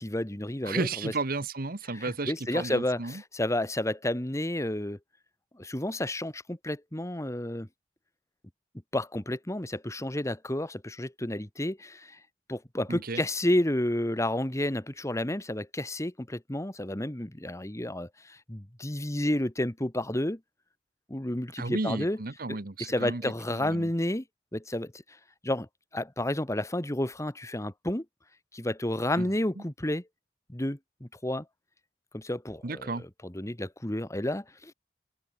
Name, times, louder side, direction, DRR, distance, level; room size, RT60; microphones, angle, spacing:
voice 1, 0.0-1.1 1.9-5.0 5.5-7.7 8.9-12.2 12.5-20.4 21.1-22.2 22.5-24.2 24.5-24.9 25.4-25.7 25.9-28.1 28.5-30.1 30.5-31.5 32.1-32.9 33.2-34.7, left 1 dB, 15° left, 1.8 m, -31 dB
voice 2, 0.6-3.2 12.9-13.3 21.6-23.9 29.2-29.3 29.6-29.7 32.6-33.0, right 3 dB, 55° right, 1.3 m, -33 dB
open air
head